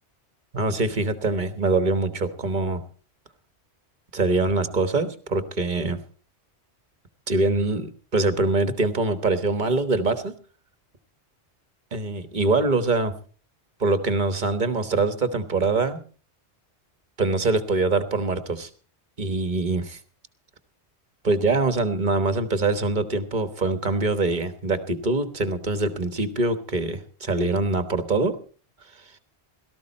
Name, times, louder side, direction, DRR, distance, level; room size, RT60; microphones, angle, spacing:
voice 1, 0.5-2.8 4.1-6.0 7.3-10.3 11.9-13.1 13.8-16.0 17.2-18.7 19.2-20.0 21.2-28.4, right 3 dB, 45° right, 10 dB, 1.4 m, -24 dB
17.5 x 13.5 x 4.2 m, 0.40 s
omnidirectional pair, 1.2 m